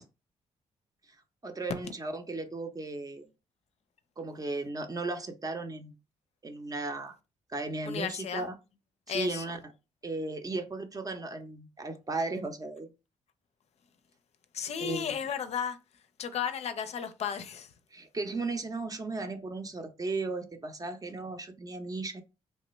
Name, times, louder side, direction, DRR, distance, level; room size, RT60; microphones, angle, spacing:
voice 1, 1.4-3.3 4.2-5.9 6.4-7.1 7.5-8.6 9.1-9.6 10.0-12.9 14.8-15.1 17.9-22.2, right 3 dB, 30° right, 0.7 m, -35 dB
voice 2, 7.9-8.5 9.1-9.4 14.5-15.8 16.2-17.7, left 8 dB, 60° left, 0.5 m, -34 dB
3.2 x 2.1 x 3.1 m
supercardioid pair, 60°, 12 cm